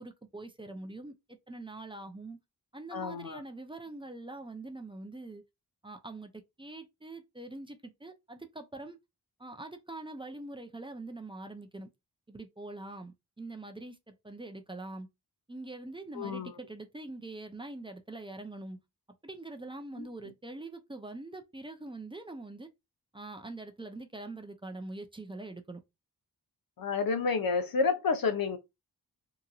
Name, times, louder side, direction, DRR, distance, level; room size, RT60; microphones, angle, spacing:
voice 1, 0.0-2.4 2.7-5.4 5.8-6.3 6.6-9.0 9.4-11.9 12.3-15.1 15.5-18.8 19.2-22.7 23.1-25.8, right 2 dB, 15° right, 0.4 m, -44 dB
voice 2, 2.9-3.4 16.1-16.5 20.0-20.3 26.8-28.6, left 4 dB, 70° left, 0.7 m, -30 dB
2.9 x 2.5 x 2.3 m
wide cardioid pair, 135°, 37 cm